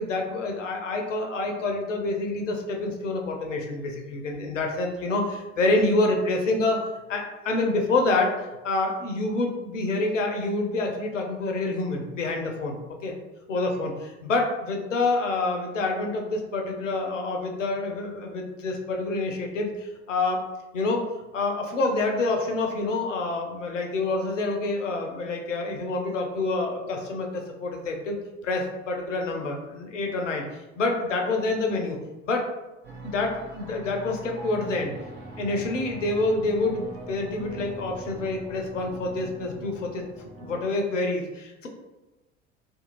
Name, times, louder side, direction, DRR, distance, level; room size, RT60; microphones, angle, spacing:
voice 1, 0.0-6.8 7.1-8.4 8.6-13.1 13.5-20.4 20.7-21.1 21.3-30.4 30.8-32.0 32.2-32.4 33.0-34.9 35.4-41.7, left 2 dB, 80° left, 2 dB, 0.5 m, -27 dB
sound 1, 32.8-40.6, right 2 dB, 30° right, 0.6 m, -42 dB
2.5 x 2.3 x 2.9 m, 1.1 s
figure-of-eight pair, 65°, 37 cm